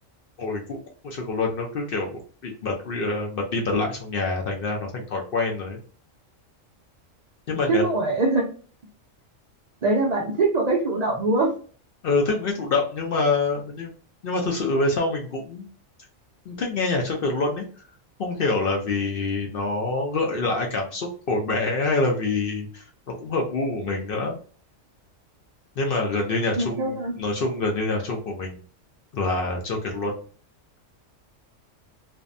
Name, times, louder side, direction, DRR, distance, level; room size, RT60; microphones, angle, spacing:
voice 1, 0.4-0.8 1.0-5.8 7.5-7.8 12.0-13.9 14.2-15.7 16.5-17.6 18.2-24.4 25.8-28.6 29.1-30.2, left 3 dB, 60° left, 1 dB, 0.6 m, -26 dB
voice 2, 7.7-8.5 9.8-11.5 26.6-27.2, right 3 dB, 70° right, -1 dB, 0.4 m, -23 dB
2.6 x 2.1 x 2.5 m, 0.42 s
omnidirectional pair, 1.3 m